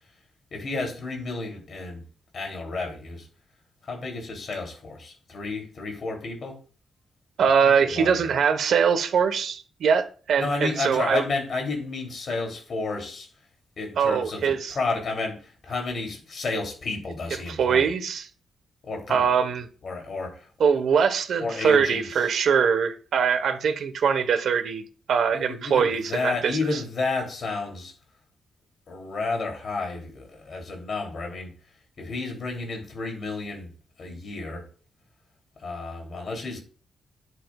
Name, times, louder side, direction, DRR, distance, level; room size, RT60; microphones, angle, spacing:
voice 1, 0.5-2.0 2.3-3.3 3.8-6.6 7.6-8.3 10.4-13.3 13.8-17.9 18.8-19.3 19.8-20.5 21.4-22.3 25.3-27.9 28.9-31.5 32.0-33.7 34.0-34.6 35.6-36.6, left 3 dB, 45° left, 3.1 m, -31 dB
voice 2, 7.4-11.2 14.0-14.7 17.5-18.2 19.1-19.7 20.6-24.8 25.1-26.8, right 6 dB, 70° right, 1.2 m, -22 dB
11.5 x 10.0 x 2.4 m
wide cardioid pair, 155°, 0 cm